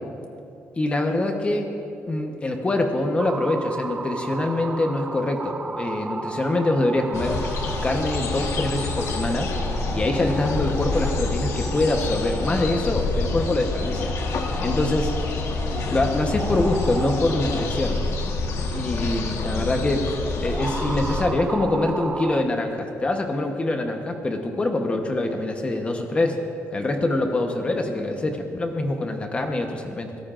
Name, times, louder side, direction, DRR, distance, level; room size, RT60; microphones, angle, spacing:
voice 1, 0.8-1.7 2.1-7.4 7.8-9.5 9.9-14.1 14.6-15.1 15.9-18.0 18.7-20.1 20.4-26.4 26.7-30.2, left 2 dB, 20° left, 4 dB, 1.0 m, -24 dB
sound 1, 3.2-22.4, right 3 dB, 20° right, 0.4 m, -35 dB
sound 2, 7.1-21.3, left 3 dB, 60° left, 1.4 m, -27 dB
22.5 x 17.0 x 2.5 m, 2.8 s
cardioid pair, 145°, 5 cm